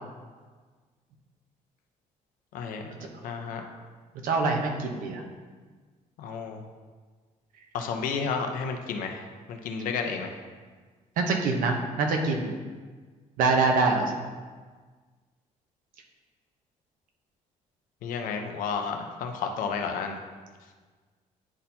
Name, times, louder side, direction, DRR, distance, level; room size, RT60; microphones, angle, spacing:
voice 1, 2.5-2.9 3.2-3.7 6.2-6.6 7.7-9.2 9.5-10.4 18.0-20.2, left 5 dB, 80° left, 4 dB, 0.7 m, -31 dB
voice 2, 4.2-5.2 11.2-12.5 13.4-14.1, right 3 dB, 80° right, 2 dB, 0.9 m, -24 dB
9.9 x 4.3 x 2.7 m, 1.5 s
cardioid pair, 175°, 14 cm